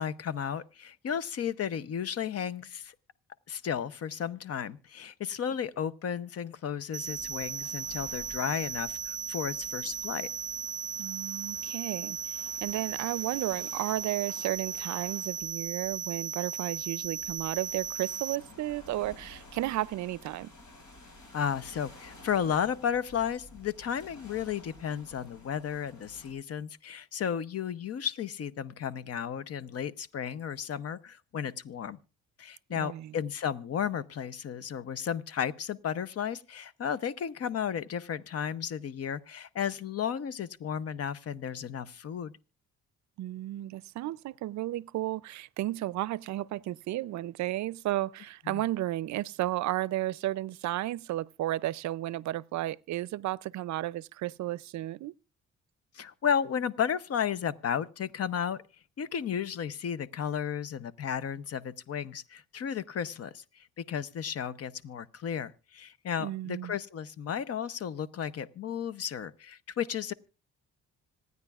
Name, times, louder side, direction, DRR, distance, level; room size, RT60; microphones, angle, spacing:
voice 1, 0.0-2.9 3.5-10.3 21.3-32.0 32.4-42.3 48.5-48.6 55.9-58.6 59.0-70.1, left 8 dB, 55° left, 0.8 m, -33 dB
sound 1, 6.9-18.4, right 7 dB, 15° right, 0.8 m, -36 dB
sound 2, 7.0-26.3, left 2 dB, 70° left, 6.3 m, -53 dB
voice 2, 11.0-20.5 32.8-33.2 43.2-55.1 66.2-66.7, right 15 dB, 70° right, 0.5 m, -33 dB
26.0 x 9.5 x 2.4 m
cardioid pair, 90°, 30 cm